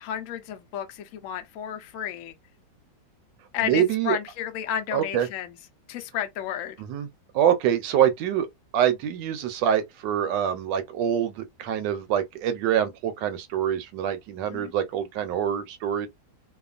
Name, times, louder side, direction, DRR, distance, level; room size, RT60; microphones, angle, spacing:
voice 1, 0.0-2.3 3.5-5.5 5.9-6.8 14.5-14.7, left 10 dB, 85° left, 0.7 m, -32 dB
voice 2, 3.6-4.2 4.9-5.3 6.8-7.1 7.3-8.5 8.7-16.1, right 10 dB, 75° right, 1.2 m, -25 dB
2.9 x 2.3 x 2.3 m
omnidirectional pair, 2.0 m